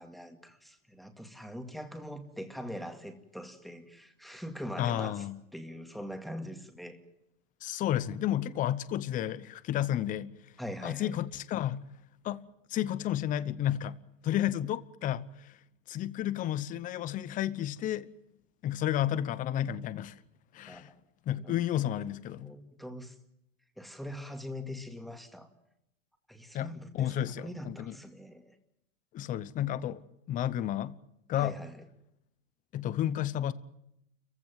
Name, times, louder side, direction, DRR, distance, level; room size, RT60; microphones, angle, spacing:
voice 1, 0.0-5.3 5.5-7.0 10.6-11.2 20.7-20.9 21.4-21.6 22.0-22.1 22.4-23.2 23.8-25.5 26.3-28.6 31.4-31.8, equal, ahead, 2.2 m, -42 dB
voice 2, 4.8-5.4 7.6-10.3 10.8-11.8 12.2-12.4 12.7-14.0 14.2-15.5 15.9-18.1 18.6-20.2 20.5-20.9 21.3-22.5 26.5-27.9 29.1-30.0 30.3-30.9 31.3-31.5 32.7-33.5, left 11 dB, 20° left, 0.8 m, -31 dB
29.5 x 15.5 x 9.3 m
supercardioid pair, 155°, 38 cm